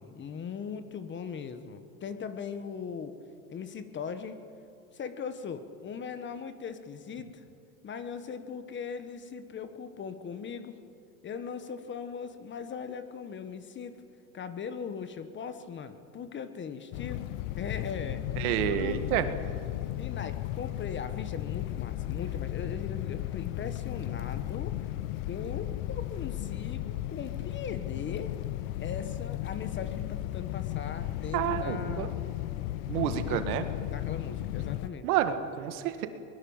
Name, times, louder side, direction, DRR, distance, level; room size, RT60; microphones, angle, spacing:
voice 1, 0.0-3.2 3.5-4.4 4.9-7.4 7.8-10.8 11.2-14.0 14.3-17.3 17.6-18.3 18.6-19.1 19.9-24.9 25.3-28.3 28.8-32.1 33.2-35.1, left 6 dB, 25° left, 10 dB, 1.3 m, -39 dB
sound 1, 16.9-34.9, left 14 dB, 65° left, 0.8 m, -35 dB
voice 2, 18.4-19.3 31.3-32.1 32.9-33.6 35.0-36.1, right 11 dB, 70° right, 9 dB, 1.9 m, -29 dB
22.5 x 20.5 x 7.2 m, 2.6 s
supercardioid pair, 135°, 45 cm